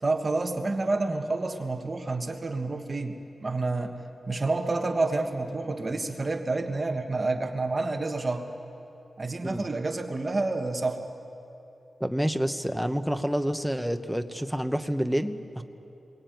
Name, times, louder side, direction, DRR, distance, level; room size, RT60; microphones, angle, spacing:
voice 1, 0.0-4.0 4.3-8.4 9.2-11.0, right 3 dB, 30° right, 4 dB, 1.5 m, -29 dB
voice 2, 12.0-15.6, equal, ahead, 7 dB, 1.0 m, -28 dB
28.0 x 22.5 x 9.3 m, 2.8 s
wide cardioid pair, 145°, 0 cm